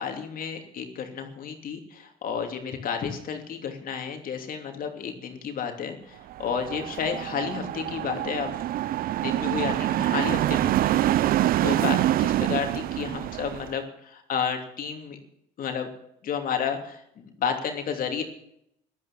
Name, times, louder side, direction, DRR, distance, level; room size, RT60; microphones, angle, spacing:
voice 1, 0.0-8.5 9.2-15.2 15.6-15.9 16.2-18.2, left 7 dB, 55° left, 4 dB, 2.9 m, -31 dB
sound 1, 6.3-13.7, right 14 dB, 60° right, 0.5 m, -26 dB
13.0 x 12.0 x 7.4 m, 0.74 s
cardioid pair, 110°, 17 cm